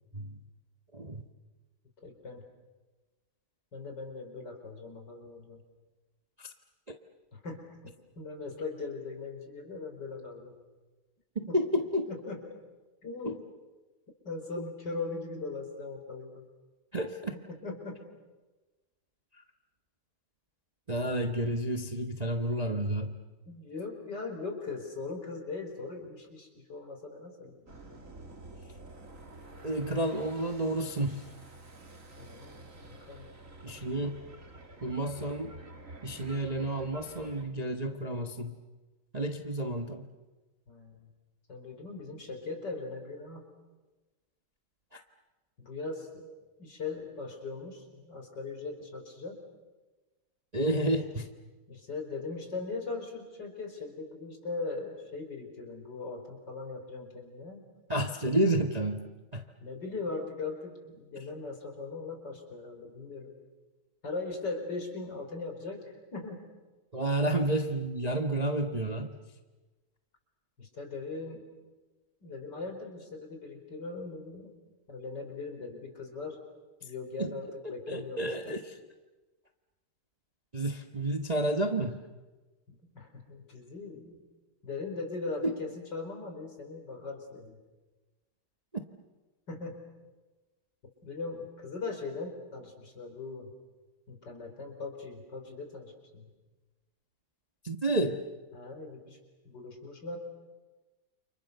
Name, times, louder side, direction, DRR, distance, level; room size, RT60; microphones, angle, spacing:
voice 1, 0.9-1.2 6.4-6.5 11.3-12.1 13.2-13.3 16.9-17.3 20.9-23.1 29.6-31.3 33.6-34.2 34.8-35.6 36.0-38.6 39.1-40.0 44.9-45.0 50.5-51.3 57.9-59.1 59.3-59.4 66.9-69.1 77.2-77.3 77.6-78.7 80.5-82.0 85.4-85.5 97.6-98.2, right 1 dB, 25° right, 5 dB, 1.2 m, -30 dB
voice 2, 2.0-2.4 3.7-5.6 7.3-10.6 11.5-11.6 12.1-12.6 13.0-13.4 14.2-16.5 17.3-18.0 23.5-27.7 32.2-33.3 40.7-41.1 41.5-43.5 45.6-49.4 51.7-57.6 59.6-63.3 64.0-66.4 70.6-71.4 72.2-74.5 74.9-76.4 76.8-78.5 82.7-84.2 84.6-87.6 89.5-89.8 91.0-93.5 94.1-96.3 98.5-99.2 99.5-100.2, left 3 dB, 55° left, 4 dB, 5.1 m, -40 dB
sound 1, 27.7-37.4, right 2 dB, 40° right, 2.9 m, -49 dB
29.5 x 28.5 x 6.8 m, 1.2 s
omnidirectional pair, 2.2 m